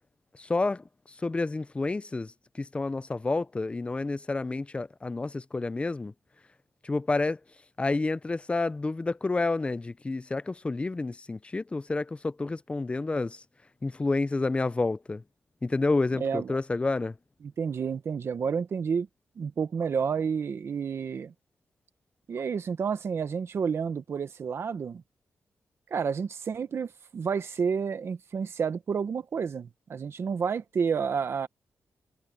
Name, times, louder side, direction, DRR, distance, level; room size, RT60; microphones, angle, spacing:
voice 1, 0.4-0.8 1.2-2.3 2.6-6.1 6.8-7.4 7.8-13.4 13.8-15.2 15.6-17.1, left 3 dB, 25° left, 0.6 m, -29 dB
voice 2, 16.1-16.6 17.6-19.1 19.4-21.3 22.3-25.0 25.9-31.5, right 6 dB, 55° right, 1.1 m, -30 dB
cardioid pair, 100°, 5 cm